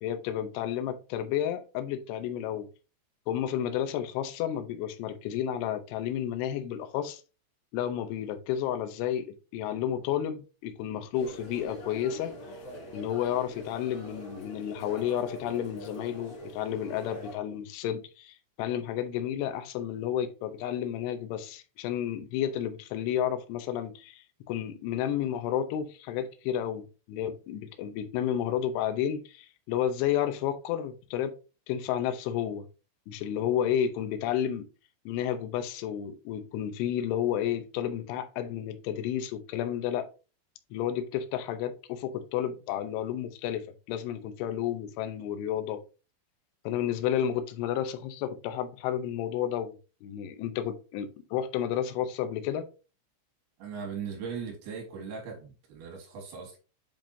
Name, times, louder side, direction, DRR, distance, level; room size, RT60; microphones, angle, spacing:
voice 1, 0.0-2.7 3.3-7.2 7.7-12.3 12.9-31.3 31.7-32.7 33.1-34.7 35.1-40.1 40.7-45.8 46.7-52.7, left 10 dB, 80° left, 2.5 m, -31 dB
sound 1, 11.1-17.3, left 1 dB, 50° left, 3.3 m, -43 dB
voice 2, 53.6-56.6, right 6 dB, 65° right, 2.9 m, -39 dB
7.2 x 5.2 x 2.7 m
omnidirectional pair, 5.6 m